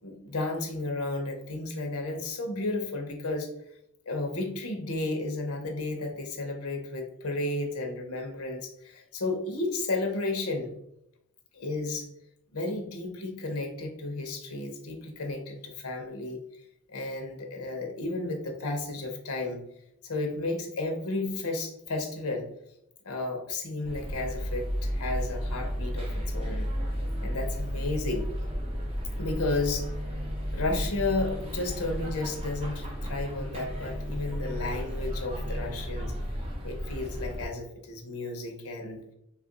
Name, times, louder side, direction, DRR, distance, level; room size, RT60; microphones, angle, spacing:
voice 1, 0.0-3.5 4.1-10.7 11.5-12.1 12.5-16.4 16.9-19.6 20.0-22.5 23.0-26.7 27.2-28.3 29.2-29.9 30.5-36.1 36.6-39.1, left 2 dB, 80° left, 4 dB, 0.8 m, -33 dB
sound 1, 23.8-37.5, equal, 30° right, 0.7 m, -33 dB
2.9 x 2.4 x 3.8 m, 0.79 s
head